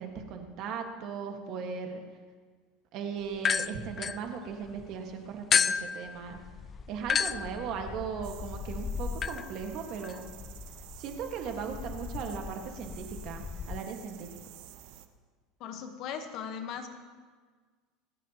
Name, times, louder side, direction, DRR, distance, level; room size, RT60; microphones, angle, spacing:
voice 1, 0.0-2.0 2.9-6.4 6.9-10.3 11.0-14.3, right 6 dB, 50° right, 4 dB, 1.7 m, -38 dB
sound 1, 3.4-4.8 5.5-13.8, left 6 dB, 25° left, 0.3 m, -33 dB
sound 2, 8.2-15.1, right 12 dB, 65° right, 0.9 m, -50 dB
voice 2, 15.6-16.9, left 7 dB, 50° left, 7 dB, 1.3 m, -38 dB
27.5 x 9.8 x 3.0 m, 1.5 s
supercardioid pair, 145°, 0 cm